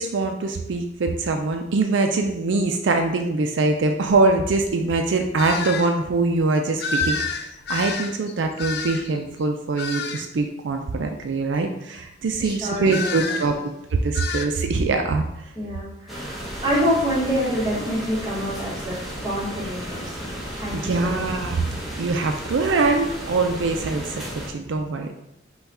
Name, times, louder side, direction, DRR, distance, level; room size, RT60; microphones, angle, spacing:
voice 1, 0.0-13.6 14.0-15.4 20.7-25.1, right 3 dB, 80° right, 4 dB, 0.4 m, -23 dB
sound 1, 5.4-5.9 6.8-9.2 9.8-10.3 12.9-13.5 14.1-14.5, left 4 dB, 60° left, 0.4 m, -28 dB
voice 2, 12.4-13.6 15.5-19.0 19.2-21.2, equal, 25° right, -6 dB, 1.4 m, -27 dB
sound 2, 16.1-24.5, equal, ahead, 1.0 m, -34 dB
5.6 x 2.3 x 4.1 m, 0.85 s
head